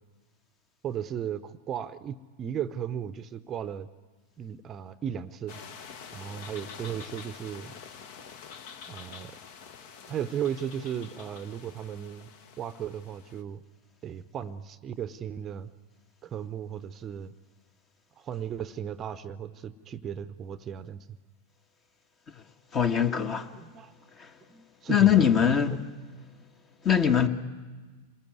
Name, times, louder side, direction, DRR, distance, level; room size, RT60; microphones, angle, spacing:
voice 1, 0.8-3.9 4.4-5.6 6.1-7.7 8.9-9.4 10.1-12.3 12.6-13.6 14.0-15.7 16.2-17.3 18.2-21.0 23.6-23.9 24.5-25.3 25.7-25.8, right 9 dB, 25° right, 0.8 m, -36 dB
sound 1, 5.5-13.4, left 6 dB, 50° left, 1.3 m, -47 dB
voice 2, 22.7-23.5 24.2-24.3 24.9-25.8 26.8-27.3, left 8 dB, 30° left, 1.5 m, -22 dB
27.5 x 20.5 x 9.5 m
figure-of-eight pair, 90°, 0 cm